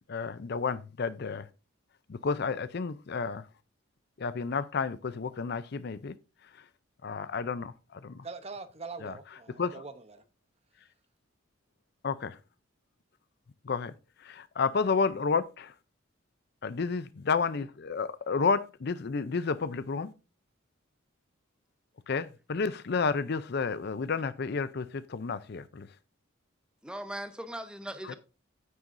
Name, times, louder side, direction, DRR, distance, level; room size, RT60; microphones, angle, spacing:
voice 1, 0.1-1.5 2.1-3.4 4.2-6.2 7.0-8.2 9.0-9.1 9.6-9.8 12.0-12.4 13.7-13.9 14.2-15.7 16.6-20.1 22.1-25.9, left 5 dB, 50° left, 0.5 m, -31 dB
voice 2, 8.2-10.2, right 4 dB, 30° right, 0.7 m, -43 dB
voice 3, 26.8-28.1, right 1 dB, 5° right, 0.8 m, -39 dB
9.3 x 8.9 x 2.6 m
head